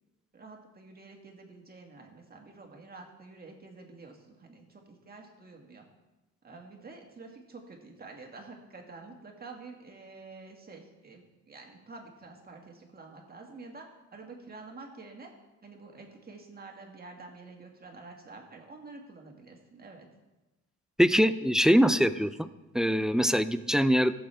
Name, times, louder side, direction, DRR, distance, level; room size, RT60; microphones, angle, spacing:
voice 1, 0.3-5.8 6.4-15.3 15.6-20.1, right 3 dB, 30° right, 1 dB, 2.1 m, -48 dB
voice 2, 21.0-22.5 22.7-24.1, equal, ahead, 13 dB, 0.4 m, -23 dB
16.5 x 7.0 x 3.5 m, 1.1 s
cardioid pair, 90°, 30 cm